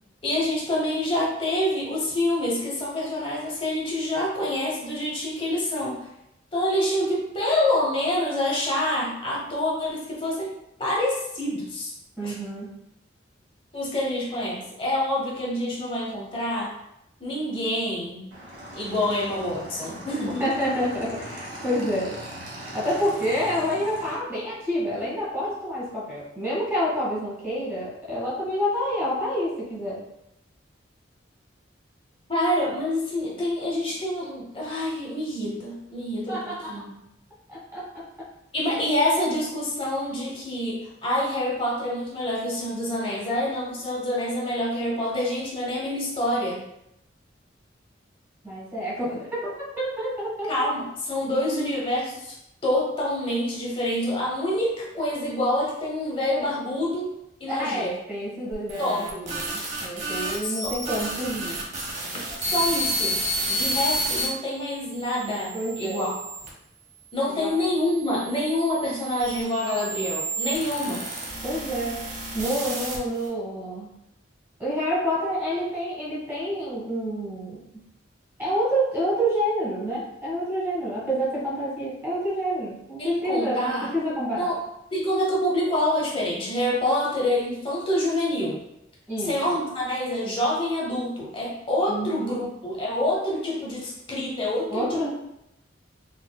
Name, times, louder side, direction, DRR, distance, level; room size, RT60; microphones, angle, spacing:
voice 1, 0.2-6.0 6.5-10.5 10.8-11.9 12.2-12.3 13.7-16.7 17.2-18.3 18.7-20.5 32.3-36.4 36.7-37.0 38.5-46.6 50.5-52.4 52.6-57.1 57.4-57.9 58.8-59.0 60.4-60.7 62.4-63.2 63.5-66.1 67.1-71.0 83.0-83.9 84.4-84.6 84.9-88.6 89.2-95.1, left 1 dB, 30° left, -4 dB, 0.9 m, -26 dB
voice 2, 12.2-12.7 20.4-22.2 22.7-30.0 36.3-36.8 37.5-38.3 48.4-50.5 57.5-61.6 65.5-66.1 67.3-67.6 71.4-72.0 72.3-73.9 74.6-77.6 78.4-84.5 89.1-89.3 91.9-92.5 94.7-95.1, equal, 15° right, -7 dB, 1.4 m, -28 dB
Motorcycle / Engine, 18.3-24.2, equal, 85° right, 1.0 m, -40 dB
sound 1, 58.5-64.3 64.9-66.5 67.3-73.3, right 1 dB, 40° right, 0.8 m, -31 dB
3.9 x 2.7 x 2.2 m, 0.84 s
head